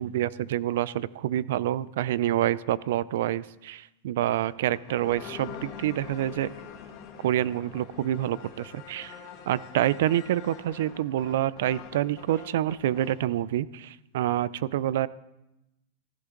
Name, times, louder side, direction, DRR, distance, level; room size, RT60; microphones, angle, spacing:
voice 1, 0.0-6.5 7.2-9.2 9.5-15.1, right 12 dB, 70° right, 19 dB, 0.5 m, -27 dB
sound 1, 4.4-13.3, left 8 dB, 40° left, 2.0 m, -45 dB
15.5 x 14.0 x 3.9 m, 0.93 s
supercardioid pair, 145°, 0 cm